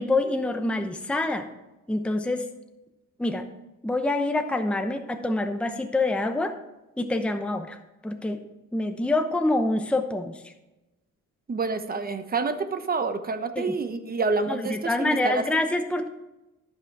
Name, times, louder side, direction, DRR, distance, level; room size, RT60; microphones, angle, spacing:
voice 1, 0.0-1.5 1.9-2.5 3.2-3.5 3.8-6.5 7.0-7.8 8.0-8.4 8.7-10.5 13.6-13.8 14.5-16.1, left 2 dB, 5° left, 6 dB, 0.7 m, -26 dB
voice 2, 11.5-15.4, right 4 dB, 30° right, 9 dB, 1.0 m, -28 dB
13.0 x 5.9 x 4.7 m, 1.0 s
cardioid pair, 90°, 30 cm